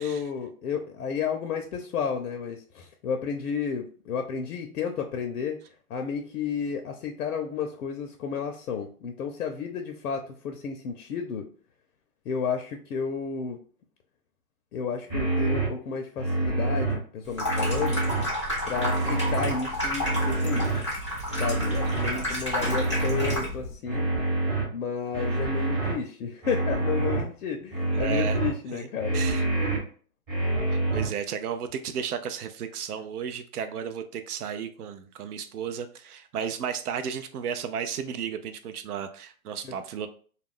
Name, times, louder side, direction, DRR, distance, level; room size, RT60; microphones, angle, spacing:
voice 1, 0.0-5.6 5.9-11.5 12.3-13.6 14.7-18.0 18.6-20.7 21.4-24.1 24.7-29.2 39.6-39.7, left 6 dB, 80° left, 4 dB, 0.6 m, -32 dB
sound 1, 15.1-15.7 16.2-16.9 17.4-18.2 18.7-19.5 20.0-20.8 21.3-22.1 22.6-23.4 23.9-24.6 25.1-25.9 26.4-27.2 27.7-28.5 29.0-29.8 30.3-31.1, right 2 dB, 15° right, 0.7 m, -26 dB
Water tap faucet / Sink (filling or washing), 17.2-23.7, equal, 25° left, 0.3 m, -31 dB
voice 2, 22.1-22.4 27.9-28.4 28.7-28.8 29.1-29.4 30.7-40.1, right 7 dB, 85° right, 9 dB, 0.5 m, -34 dB
2.4 x 2.2 x 3.5 m, 0.43 s
hypercardioid pair, 155°, 44 cm